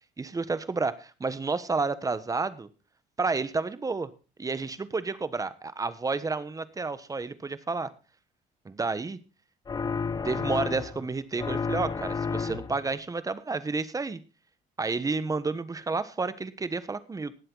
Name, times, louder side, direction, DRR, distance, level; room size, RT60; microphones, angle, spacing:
voice 1, 0.2-2.7 3.2-4.1 4.4-7.9 8.6-9.2 10.2-14.2 14.8-17.4, right 4 dB, 20° right, 14 dB, 1.2 m, -30 dB
sound 1, 9.7-11.1 11.4-12.9, left 5 dB, 25° left, 0.6 m, -31 dB
18.5 x 7.8 x 4.0 m, 0.33 s
cardioid pair, 110°, 17 cm